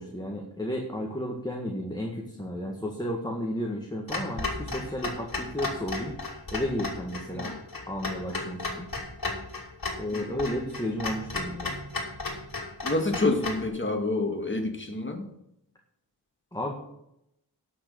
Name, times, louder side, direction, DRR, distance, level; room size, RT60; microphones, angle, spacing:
voice 1, 0.0-6.1 6.5-7.5 7.9-8.9 10.0-11.7 16.5-16.7, equal, 10° left, 0 dB, 1.9 m, -33 dB
Clock, 4.1-13.7, left 2 dB, 50° left, 2.7 m, -34 dB
voice 2, 12.8-15.3, left 2 dB, 25° left, 4 dB, 2.2 m, -28 dB
11.5 x 6.5 x 7.1 m, 0.80 s
wide cardioid pair, 65°, 43 cm